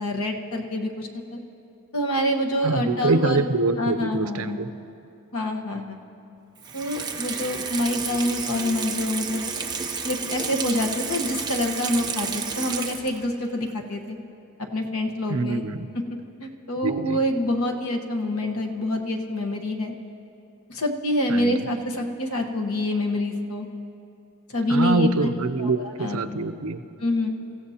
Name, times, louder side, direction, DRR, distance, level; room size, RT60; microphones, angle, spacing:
voice 1, 0.0-1.4 1.9-3.5 3.8-4.6 5.3-6.0 6.7-9.4 10.0-14.2 14.7-15.6 16.4-19.9 20.7-23.7 24.5-25.1 25.6-26.2 27.0-27.3, left 1 dB, 75° left, 2 dB, 1.3 m, -26 dB
voice 2, 2.6-4.7 15.3-15.9 16.8-17.2 21.3-21.7 24.7-26.8, right 3 dB, 75° right, 10 dB, 0.6 m, -25 dB
Water tap faucet / Sink (filling or washing), 6.6-13.3 13.7-13.8, right 5 dB, 20° right, 0.8 m, -31 dB
27.0 x 15.0 x 2.9 m, 2.6 s
head